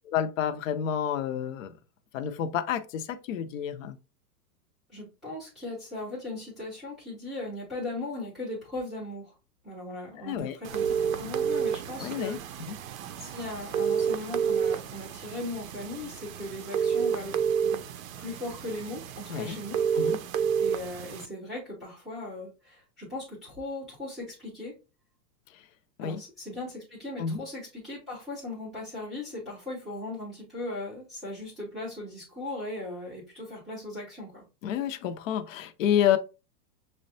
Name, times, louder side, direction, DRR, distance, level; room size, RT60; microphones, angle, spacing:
voice 1, 0.1-1.7 2.1-4.0 10.2-10.6 12.0-12.4 12.7-12.8 19.3-19.6 19.9-20.2 25.5-25.6 26.0-26.2 27.2-27.4 34.6-36.2, left 9 dB, 55° left, 0.5 m, -29 dB
voice 2, 4.9-9.3 9.6-12.6 13.2-17.8 18.2-19.8 20.6-24.8 26.0-34.4, left 2 dB, ahead, 0.4 m, -38 dB
sound 1, 10.6-21.3, right 7 dB, 60° right, 0.5 m, -30 dB
6.2 x 2.1 x 2.6 m
hypercardioid pair, 160°, 49 cm